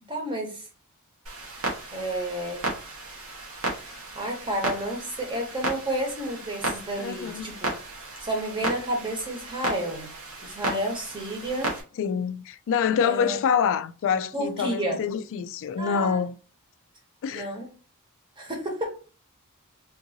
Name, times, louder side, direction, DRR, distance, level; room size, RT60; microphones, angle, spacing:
voice 1, 0.1-0.7 1.9-2.7 4.1-7.7 8.2-10.1 10.4-11.7 13.0-13.4 14.3-15.0 15.8-16.2 17.3-17.7 18.4-19.0, right 1 dB, 20° right, 1.0 m, -31 dB
Clock, 1.3-11.8, right 2 dB, 80° right, 1.2 m, -34 dB
voice 2, 7.0-7.5 12.0-16.3 17.2-17.5, left 7 dB, 60° left, 0.3 m, -26 dB
3.6 x 2.6 x 2.7 m
head